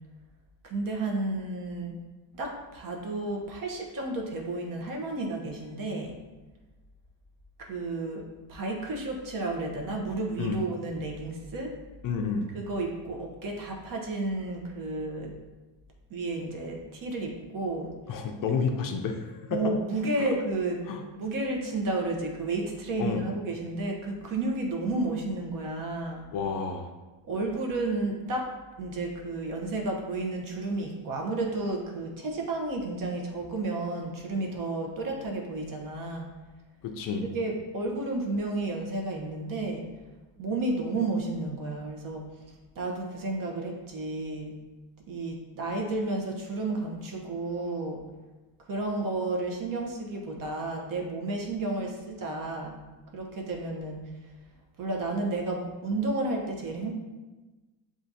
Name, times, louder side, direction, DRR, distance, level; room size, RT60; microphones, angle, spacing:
voice 1, 0.6-2.0 2.3-6.1 7.6-8.2 8.5-11.7 12.5-15.3 16.1-17.9 19.5-20.8 21.1-26.3 27.2-28.5 28.8-36.3 37.2-39.8 40.4-42.2 42.7-44.6 45.1-48.0 48.7-52.8 53.1-54.0 54.8-56.9, right 2 dB, 45° right, 1 dB, 0.8 m, -32 dB
voice 2, 12.0-12.5 18.1-19.7 20.2-20.3 20.9-21.0 23.0-23.3 26.3-26.9 36.8-37.3, left 5 dB, 50° left, 4 dB, 0.4 m, -30 dB
7.3 x 2.4 x 2.7 m, 1.2 s
cardioid pair, 145°, 45 cm